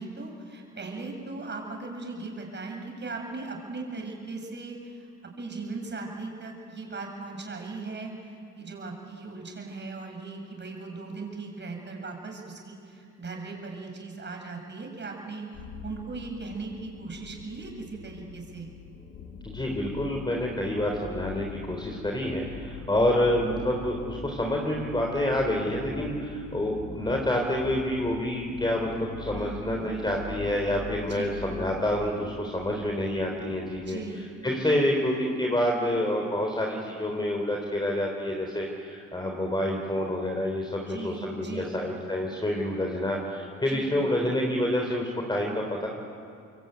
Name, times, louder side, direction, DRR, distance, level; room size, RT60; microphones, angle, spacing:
voice 1, 0.0-5.1 5.4-18.7 29.3-30.3 31.1-31.4 33.9-34.2 40.9-41.8 43.7-44.0, right 3 dB, 35° right, 2 dB, 7.5 m, -38 dB
sound 1, 15.5-33.9, left 4 dB, 75° left, 4.0 m, -43 dB
voice 2, 19.4-34.0 34.4-45.9, left 1 dB, 15° left, 0 dB, 3.9 m, -28 dB
25.5 x 23.0 x 9.3 m, 2.4 s
cardioid pair, 90°, 30 cm